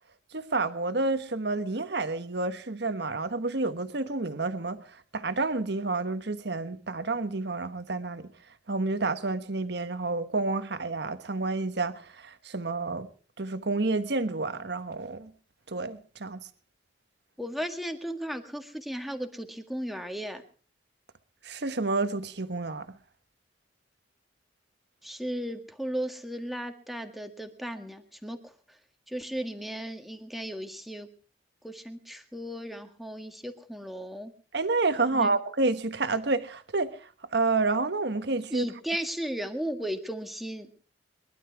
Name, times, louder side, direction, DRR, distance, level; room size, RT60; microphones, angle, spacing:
voice 1, 0.3-8.3 8.7-13.1 13.4-15.3 15.7-16.4 21.4-23.0 34.5-38.7, right 3 dB, 65° right, 1.3 m, -29 dB
voice 2, 17.4-20.4 25.0-28.8 29.1-31.1 31.6-34.3 35.1-35.4 38.5-40.7, equal, ahead, 1.8 m, -35 dB
23.0 x 12.0 x 4.7 m
head